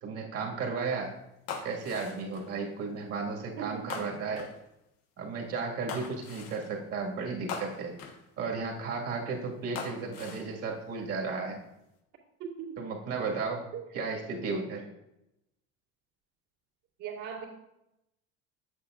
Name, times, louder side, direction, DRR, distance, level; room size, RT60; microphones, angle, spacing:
voice 1, 0.0-1.1 1.6-4.5 5.2-7.9 8.4-11.6 12.8-13.6 13.9-14.9, right 4 dB, 50° right, 0 dB, 1.9 m, -34 dB
sound 1, 1.5-2.6 3.9-4.6 5.9-6.7 7.5-8.3 9.7-10.5 11.2-11.6, left 5 dB, 85° left, 1.2 m, -41 dB
voice 2, 3.6-4.0 12.4-12.8 13.7-13.8 17.0-17.5, right 7 dB, 70° right, -6 dB, 2.5 m, -39 dB
8.4 x 7.3 x 2.5 m, 0.87 s
cardioid pair, 120°, 30 cm